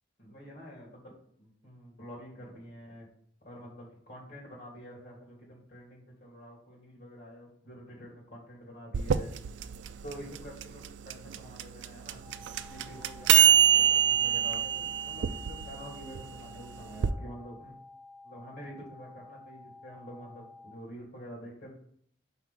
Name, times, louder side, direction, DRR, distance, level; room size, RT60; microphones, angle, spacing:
voice 1, 0.2-1.1 1.4-3.1 3.4-9.3 10.0-12.2 12.6-17.7 18.2-21.7, equal, 50° left, -3 dB, 2.9 m, -47 dB
sound 1, 8.9-17.1, right 10 dB, 70° right, 0.3 m, -25 dB
sound 2, 12.2-20.7, left 3 dB, 50° right, 1.0 m, -52 dB
4.7 x 4.5 x 5.4 m, 0.63 s
head